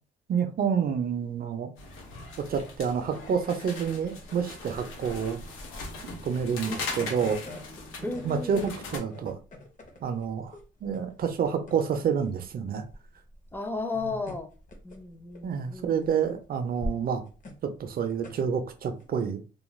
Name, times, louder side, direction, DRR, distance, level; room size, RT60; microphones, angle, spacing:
voice 1, 0.3-1.7 2.4-5.4 6.2-7.4 8.2-9.4 10.0-12.8 14.0-14.1 15.4-17.2 17.6-19.4, right 7 dB, 50° right, 0.5 m, -28 dB
sound 1, 1.8-9.0, left 3 dB, 85° left, 0.8 m, -40 dB
sound 2, 4.3-19.1, left 1 dB, 40° left, 0.8 m, -44 dB
voice 2, 8.0-8.7 13.5-14.5 14.8-15.9, left 3 dB, 10° left, 0.5 m, -34 dB
2.3 x 2.1 x 3.1 m
cardioid pair, 90°, 20 cm